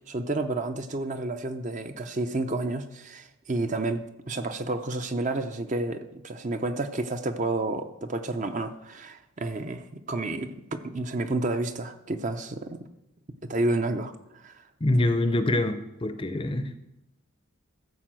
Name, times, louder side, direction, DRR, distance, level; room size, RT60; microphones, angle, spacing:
voice 1, 0.1-12.9 13.5-14.6 16.6-16.7, right 2 dB, 35° right, 8 dB, 0.6 m, -30 dB
voice 2, 14.8-16.8, left 1 dB, 25° left, 9 dB, 0.6 m, -25 dB
14.5 x 4.9 x 7.5 m, 0.87 s
head